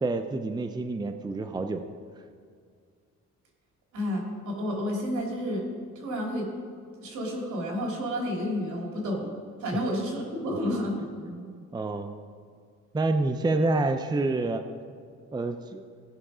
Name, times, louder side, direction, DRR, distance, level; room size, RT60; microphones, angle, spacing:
voice 1, 0.0-1.8 9.7-9.8 11.2-12.2 12.9-14.6 15.3-15.8, right 2 dB, 15° right, 8 dB, 0.5 m, -28 dB
voice 2, 3.9-5.6 5.9-6.5 7.0-9.2 9.6-10.9, equal, 75° right, -1 dB, 2.9 m, -30 dB
16.5 x 5.8 x 5.0 m, 2.1 s
cardioid pair, 90°, 30 cm